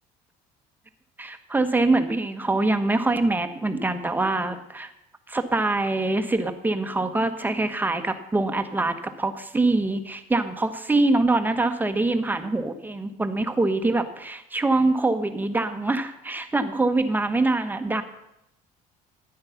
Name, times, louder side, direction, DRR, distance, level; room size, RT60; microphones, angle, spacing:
voice 1, 1.2-4.9 5.3-18.0, right 2 dB, 10° right, 8 dB, 1.3 m, -24 dB
13.5 x 9.6 x 5.8 m, 0.83 s
cardioid pair, 110°, 17 cm